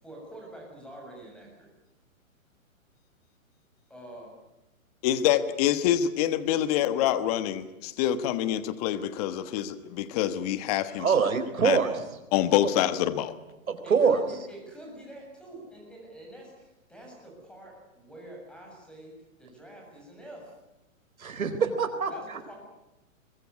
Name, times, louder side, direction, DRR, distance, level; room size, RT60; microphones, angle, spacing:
voice 1, 0.0-1.7 3.9-4.3 12.5-12.6 13.8-19.1 19.4-20.6 22.1-22.5, right 1 dB, ahead, 0 dB, 7.3 m, -46 dB
voice 2, 5.0-11.1 11.6-11.8 12.3-13.3, left 11 dB, 30° left, 13 dB, 1.3 m, -26 dB
voice 3, 11.0-12.0 12.6-12.7 13.7-14.2 21.2-22.1, right 6 dB, 90° right, 9 dB, 4.2 m, -24 dB
23.0 x 20.5 x 9.6 m, 0.98 s
hypercardioid pair, 155°, 41 cm